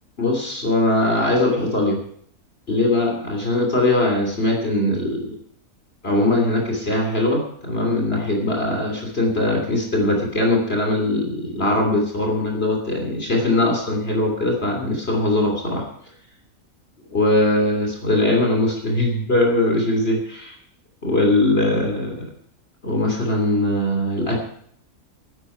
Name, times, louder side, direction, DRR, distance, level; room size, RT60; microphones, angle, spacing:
voice 1, 0.2-2.0 2.7-5.3 6.0-15.9 17.1-20.6 21.0-22.3 22.8-24.4, left 2 dB, 45° left, 1 dB, 3.2 m, -21 dB
11.5 x 10.0 x 9.6 m, 0.66 s
omnidirectional pair, 1.5 m